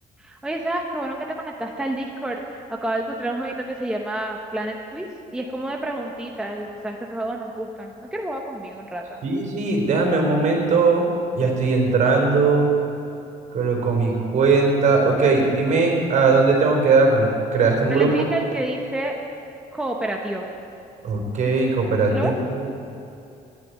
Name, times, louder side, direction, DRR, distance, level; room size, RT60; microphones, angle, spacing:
voice 1, 0.2-2.4 2.7-5.1 5.3-9.2 17.9-19.1 19.7-20.5 22.1-22.3, right 1 dB, 5° right, 0 dB, 1.0 m, -29 dB
voice 2, 9.2-11.0 11.3-12.7 13.5-18.3 21.0-22.7, right 4 dB, 55° right, 1 dB, 4.0 m, -19 dB
14.5 x 10.5 x 9.4 m, 2.7 s
cardioid pair, 150°, 15 cm